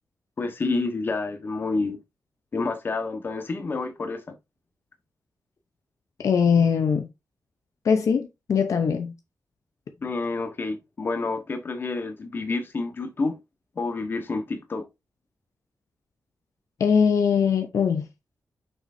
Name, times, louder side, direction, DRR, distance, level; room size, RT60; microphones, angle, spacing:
voice 1, 0.4-2.0 2.5-4.2 10.0-13.3 13.7-14.9, left 3 dB, 35° left, 1.3 m, -29 dB
voice 2, 6.2-7.1 7.8-9.1 16.8-18.1, left 6 dB, 65° left, 0.8 m, -21 dB
7.0 x 5.9 x 2.7 m
wide cardioid pair, 170°, 6 cm